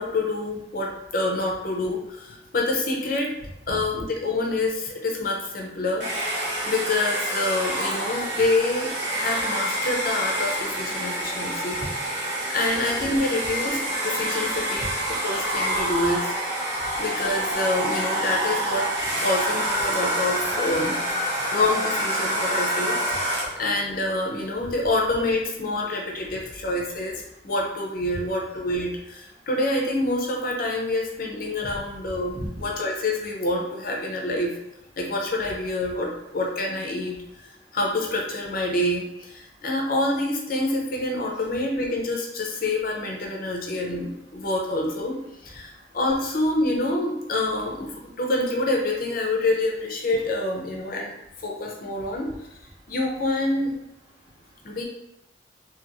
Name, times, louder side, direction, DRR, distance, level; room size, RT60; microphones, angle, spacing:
voice 1, 0.0-3.3 3.7-11.8 12.5-16.3 16.6-18.9 19.2-21.0 21.5-34.5 35.0-51.1 51.4-52.3 52.9-53.7 54.6-54.8, left 2 dB, 55° left, 0 dB, 0.6 m, -27 dB
Domestic sounds home sounds, 6.0-23.7, right 1 dB, 80° right, 0.9 m, -27 dB
voice 2, 11.0-11.9 12.2-12.5 14.8-14.9 15.8-15.9 16.7-17.0 21.2-21.5 23.3-23.6 24.6-24.7 25.9-26.0 26.2-26.6 27.4-27.5 29.3-29.5 31.5-32.7 37.2-37.8 39.5-39.6 44.4-44.5 45.6-46.0 52.0-52.3 52.7-52.9 54.2-54.8, equal, 25° right, -4 dB, 0.7 m, -42 dB
2.9 x 2.8 x 2.6 m, 0.84 s
head